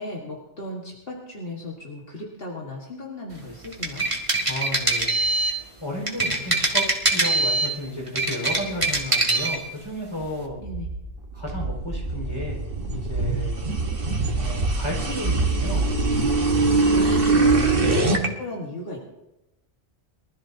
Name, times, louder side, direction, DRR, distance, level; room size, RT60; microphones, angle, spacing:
voice 1, 0.0-4.1 10.6-10.9 16.9-18.1 18.4-19.0, left 2 dB, 65° left, -2 dB, 1.9 m, -36 dB
sound 1, 3.6-5.6 6.1-7.7 8.1-9.6, right 2 dB, 30° right, 1.9 m, -23 dB
voice 2, 4.5-10.6 11.3-12.6 12.9-13.6 14.4-15.8 17.8-18.2, left 1 dB, 25° left, -2 dB, 5.0 m, -33 dB
sound 2, 10.2-18.3, right 3 dB, 60° right, 1.6 m, -23 dB
23.5 x 13.5 x 2.8 m, 0.93 s
omnidirectional pair, 1.1 m